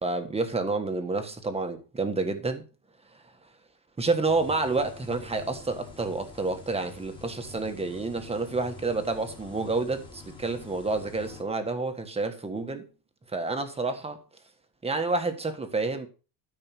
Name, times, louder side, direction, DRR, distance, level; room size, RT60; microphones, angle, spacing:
voice 1, 0.0-2.6 4.0-12.9 13.3-14.2 14.8-16.1, right 3 dB, 10° right, 1.4 m, -29 dB
sound 1, 4.3-11.4, left 4 dB, 10° left, 2.1 m, -47 dB
13.0 x 5.6 x 6.0 m
cardioid pair, 160°, 50 cm